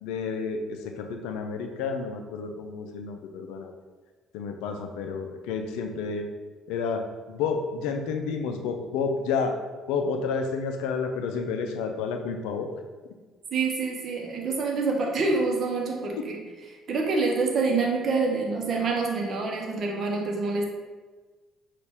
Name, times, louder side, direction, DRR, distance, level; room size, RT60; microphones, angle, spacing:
voice 1, 0.0-3.7 4.3-6.3 6.7-9.6 9.9-12.7, left 5 dB, 70° left, 5 dB, 0.4 m, -30 dB
voice 2, 13.5-16.4 16.9-20.7, right 3 dB, 50° right, 1 dB, 0.9 m, -26 dB
5.9 x 2.5 x 3.5 m, 1.3 s
hypercardioid pair, 50°, 0 cm